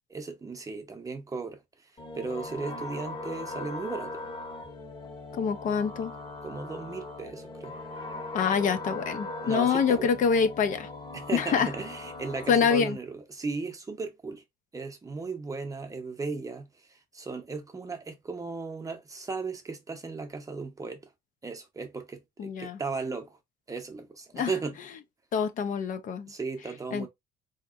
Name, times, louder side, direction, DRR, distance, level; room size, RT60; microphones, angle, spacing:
voice 1, 0.1-4.2 6.4-7.8 9.4-10.1 11.1-14.4 14.7-21.1 21.4-23.4 23.7-24.8 26.3-27.1, right 4 dB, 20° right, 0.8 m, -36 dB
sound 1, 2.0-12.6, left 2 dB, 30° left, 1.0 m, -40 dB
voice 2, 5.3-6.1 8.3-10.9 11.3-11.7 12.5-13.0 22.4-22.8 24.3-24.5 25.3-26.3 26.9-27.1, left 6 dB, 50° left, 0.5 m, -26 dB
3.5 x 2.9 x 2.4 m
cardioid pair, 110°, 17 cm